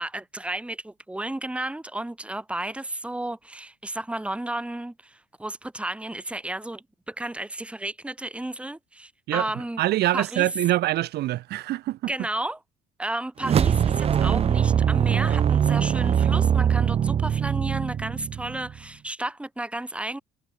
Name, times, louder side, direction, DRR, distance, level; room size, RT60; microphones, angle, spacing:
voice 1, 0.0-9.8 10.1-10.5 12.1-12.6 13.0-20.2, right 1 dB, 5° right, 2.6 m, -33 dB
voice 2, 9.8-12.1, right 15 dB, 75° right, 3.4 m, -24 dB
sound 1, 13.4-18.8, right 8 dB, 35° right, 0.6 m, -22 dB
cardioid pair, 110°, 17 cm